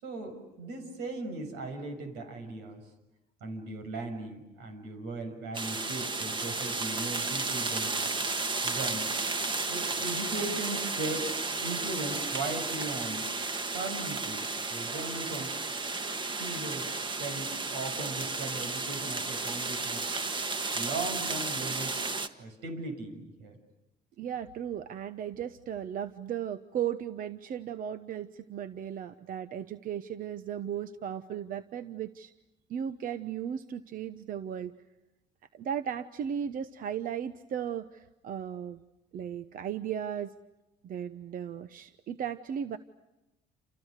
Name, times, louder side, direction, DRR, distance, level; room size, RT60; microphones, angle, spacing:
voice 1, 0.0-2.8 3.4-8.1 8.6-9.2 9.7-11.3 11.6-13.3 13.7-15.5 16.4-20.1 20.7-22.0 22.4-23.6, right 2 dB, 90° right, 6 dB, 6.9 m, -38 dB
sound 1, 5.5-22.3, right 3 dB, 30° right, 1.7 m, -33 dB
voice 2, 24.2-32.3 32.7-34.8 35.5-38.8 39.1-40.3 40.8-42.8, right 9 dB, 55° right, 11 dB, 1.0 m, -36 dB
29.5 x 29.0 x 6.7 m, 0.97 s
cardioid pair, 110°, 17 cm